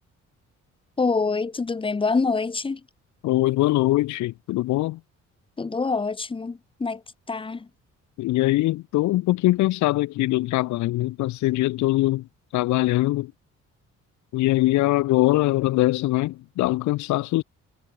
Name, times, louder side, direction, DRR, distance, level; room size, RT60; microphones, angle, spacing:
voice 1, 1.0-2.8 5.6-7.0 7.3-7.7, left 4 dB, 15° left, 0.7 m, -25 dB
voice 2, 3.2-5.0 8.2-12.3 12.5-13.3 14.3-17.4, left 17 dB, 70° left, 0.5 m, -22 dB
cardioid pair, 90°, 30 cm